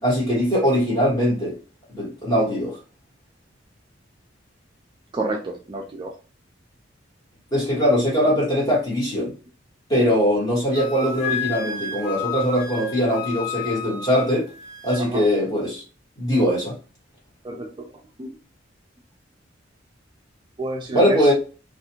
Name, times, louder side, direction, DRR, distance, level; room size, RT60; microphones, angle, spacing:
voice 1, 0.0-1.5 1.9-2.8 7.5-9.3 9.9-14.4 14.8-15.8 16.2-16.7 20.9-21.3, equal, 20° left, 1.5 m, -21 dB
voice 2, 5.1-6.1 15.0-15.2 17.4-17.7 18.2-18.3 20.6-21.3, right 2 dB, 25° right, 0.4 m, -28 dB
Wind instrument woodwind instrument, 10.7-15.0, left 6 dB, 50° left, 1.0 m, -31 dB
2.5 x 2.4 x 2.8 m
head